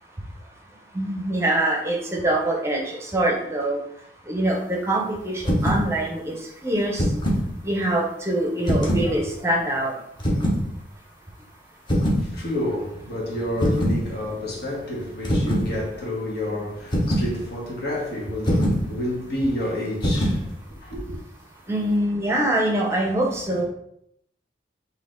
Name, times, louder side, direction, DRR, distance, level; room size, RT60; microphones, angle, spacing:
voice 1, 0.9-3.8 4.3-6.3 6.6-7.0 7.6-9.9 21.7-23.6, right 1 dB, 15° right, 0.7 m, -24 dB
sound 1, 5.4-5.9 6.8-7.5 8.6-9.1 10.2-10.6 11.9-12.3 13.6-14.0 15.2-15.7 16.9-17.3 18.4-18.8 20.0-20.4, equal, 25° left, 0.9 m, -22 dB
voice 2, 11.9-21.2, left 1 dB, 65° left, 1.4 m, -29 dB
4.1 x 2.8 x 3.7 m
head